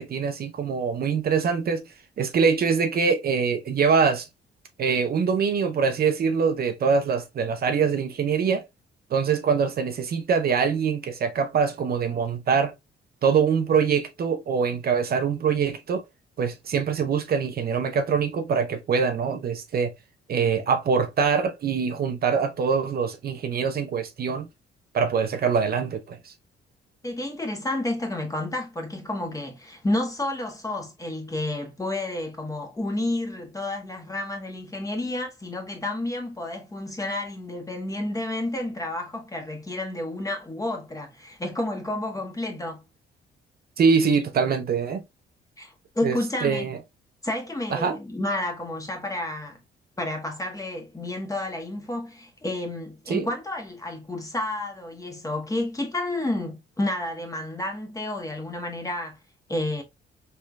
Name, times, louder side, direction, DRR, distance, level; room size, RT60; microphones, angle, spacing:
voice 1, 0.0-1.8 2.2-4.3 4.8-8.6 9.1-12.7 13.2-16.0 16.4-19.9 20.3-24.5 24.9-26.2 43.8-45.0 46.0-46.2 46.4-46.8 47.7-48.0 53.1-53.3, right 6 dB, 50° right, 0.6 m, -24 dB
voice 2, 27.0-42.8 45.6-46.7 47.2-49.6 50.0-59.2 59.5-59.8, left 1 dB, 15° left, 1.1 m, -30 dB
3.7 x 3.2 x 2.2 m
cardioid pair, 90°, 20 cm